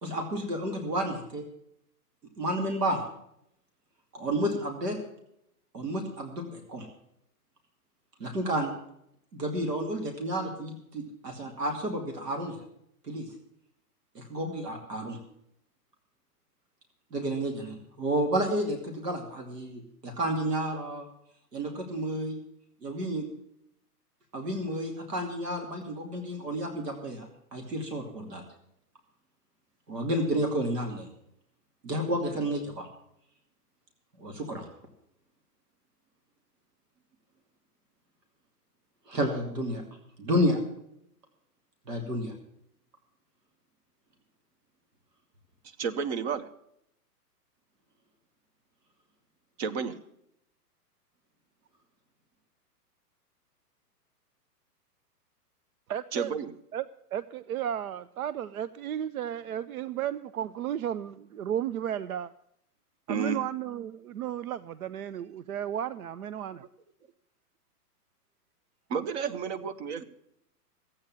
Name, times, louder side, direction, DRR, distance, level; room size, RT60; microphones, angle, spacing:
voice 1, 0.0-1.4 2.4-3.0 4.1-5.0 5.7-6.9 8.2-8.7 9.3-12.6 13.1-13.3 14.1-15.2 17.1-21.1 21.5-22.4 22.8-23.3 24.3-27.3 27.5-28.4 29.9-31.1 31.8-32.9 34.2-34.7 39.1-39.8 40.2-40.6 41.9-42.3, right 1 dB, 75° right, 2.7 m, -31 dB
voice 2, 45.8-46.5 49.6-50.0 56.1-56.5 63.1-63.4 68.9-70.0, right 6 dB, 40° right, 1.2 m, -31 dB
voice 3, 55.9-56.3 56.7-56.8 57.1-62.3 63.1-66.6, right 10 dB, 60° right, 0.6 m, -33 dB
14.0 x 8.8 x 7.5 m
hypercardioid pair, 120°, 48 cm